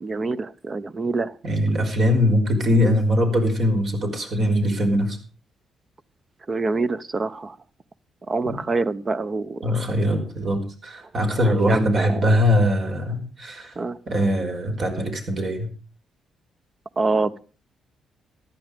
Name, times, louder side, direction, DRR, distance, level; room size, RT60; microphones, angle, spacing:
voice 1, 0.0-1.4 6.5-7.6 8.3-9.9 11.4-12.3 13.8-14.0 17.0-17.4, right 3 dB, 40° right, 15 dB, 0.9 m, -26 dB
voice 2, 1.4-5.2 8.4-8.6 9.6-13.7 14.1-15.7, equal, 55° right, 4 dB, 5.0 m, -22 dB
14.5 x 11.0 x 5.1 m, 0.38 s
supercardioid pair, 65°, 0 cm